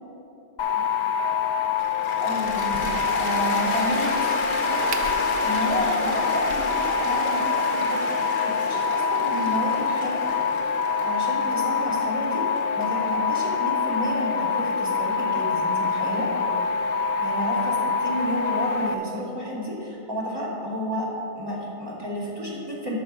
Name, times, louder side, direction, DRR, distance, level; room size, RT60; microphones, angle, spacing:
sound 1, 0.6-18.9, left 5 dB, 65° left, 1.3 m, -25 dB
Cheering / Applause, 1.8-14.0, left 3 dB, 85° left, 2.4 m, -33 dB
voice 1, 2.2-8.3 8.6-10.3 11.0-12.4 12.7-16.3 16.9-21.1 21.4-22.9, equal, 10° right, -6 dB, 2.1 m, -31 dB
Crack, 2.4-7.5, right 4 dB, 70° right, 0.7 m, -41 dB
12.5 x 6.4 x 5.5 m, 2.9 s
omnidirectional pair, 2.3 m